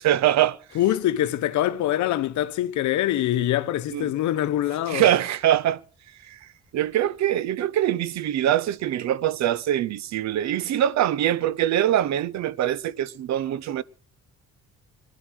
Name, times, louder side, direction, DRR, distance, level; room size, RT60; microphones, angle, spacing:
voice 1, 0.0-0.6 3.9-4.1 4.9-5.8 6.3-6.4 6.7-13.8, right 11 dB, 65° right, 0.8 m, -23 dB
voice 2, 0.7-5.0, left 13 dB, 75° left, 1.0 m, -24 dB
20.0 x 11.5 x 6.3 m
cardioid pair, 145°, 29 cm